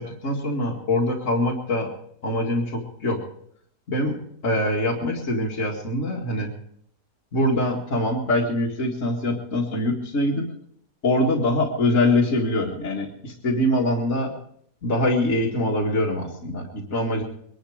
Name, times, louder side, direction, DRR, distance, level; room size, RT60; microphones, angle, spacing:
voice 1, 0.0-1.9 2.2-3.2 3.9-6.5 7.3-10.5 11.0-14.3 14.8-17.2, left 1 dB, 50° left, -2 dB, 2.4 m, -24 dB
22.0 x 11.5 x 5.0 m, 0.67 s
omnidirectional pair, 1.8 m